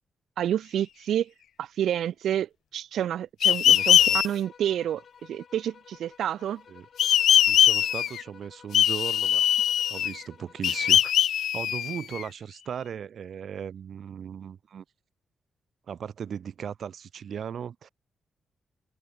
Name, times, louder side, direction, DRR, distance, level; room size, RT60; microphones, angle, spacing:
voice 1, 0.4-1.3 1.6-4.0 4.2-6.6, right 10 dB, 90° right, 3.6 m, -29 dB
sound 1, 3.4-4.3 7.0-8.2 8.7-10.2 10.6-12.2, left 10 dB, 80° left, 0.9 m, -21 dB
sound 2, 3.7-11.2, left 7 dB, 50° left, 7.1 m, -53 dB
voice 2, 3.7-4.2 6.7-6.9 7.5-9.5 9.9-14.8 15.9-17.9, right 8 dB, 55° right, 5.3 m, -37 dB
wide cardioid pair, 170°, 0 cm